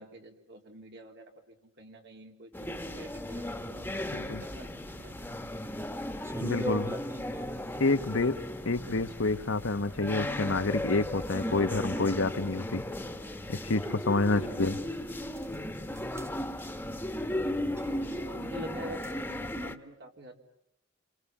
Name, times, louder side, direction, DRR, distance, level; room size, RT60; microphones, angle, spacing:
voice 1, 0.0-5.4 14.2-14.5 17.2-20.4, right 1 dB, 60° right, 3 dB, 3.5 m, -47 dB
sound 1, 2.5-19.8, left 1 dB, 10° left, 1.5 m, -36 dB
voice 2, 4.1-4.4 6.4-6.9 7.8-8.4 8.6-12.8 13.5-14.8, left 3 dB, 70° left, 10 dB, 1.2 m, -28 dB
sound 2, 6.2-7.7 11.6-11.7 12.5-12.6 14.7-14.8 15.4-15.6 15.8-16.3 16.6-16.8 17.8-18.2 19.0-19.2, right 1 dB, 15° right, 1.0 m, -39 dB
28.5 x 26.5 x 7.4 m, 0.78 s
head